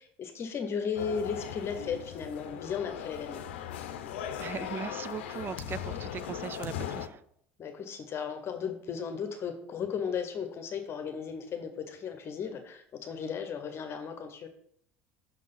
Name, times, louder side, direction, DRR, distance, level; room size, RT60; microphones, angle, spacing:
voice 1, 0.0-3.4 7.6-14.5, left 6 dB, 45° left, 1.1 m, -35 dB
sound 1, 0.9-7.1, left 9 dB, 85° left, 0.6 m, -38 dB
voice 2, 4.4-7.2, right 7 dB, 35° right, 0.4 m, -39 dB
6.0 x 3.8 x 5.5 m
supercardioid pair, 85°, 6 cm